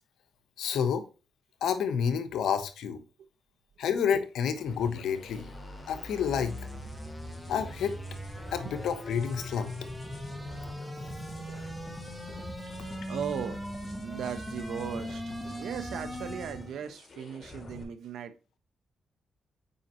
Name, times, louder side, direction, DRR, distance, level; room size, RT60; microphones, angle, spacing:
voice 1, 0.6-1.1 1.6-3.0 3.8-5.5 5.9-6.6 7.5-8.0 8.5-9.7, left 7 dB, 80° left, 1.1 m, -29 dB
sound 1, 4.5-17.8, left 1 dB, 45° left, 2.8 m, -46 dB
sound 2, 4.6-16.8, equal, 5° right, 2.2 m, -40 dB
voice 2, 12.7-13.6 14.0-18.3, right 8 dB, 80° right, 1.1 m, -38 dB
8.3 x 5.3 x 3.1 m
cardioid pair, 75°, 0 cm